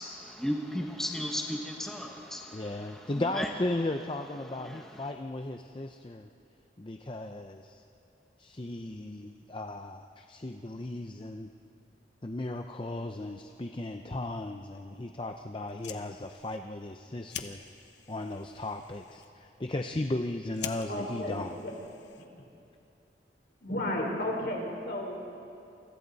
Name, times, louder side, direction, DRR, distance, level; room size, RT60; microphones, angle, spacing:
voice 1, 0.0-3.5 4.4-5.1, equal, 5° left, 0 dB, 1.2 m, -36 dB
voice 2, 2.5-6.3 6.8-7.8 8.4-11.5 12.2-17.7 18.1-21.6, left 2 dB, 30° left, 5 dB, 0.6 m, -36 dB
Fire, 15.6-22.5, left 8 dB, 80° left, 1.1 m, -47 dB
voice 3, 20.9-21.7 23.6-25.3, left 1 dB, 55° left, 0 dB, 3.9 m, -33 dB
28.5 x 25.0 x 4.1 m, 2.7 s
head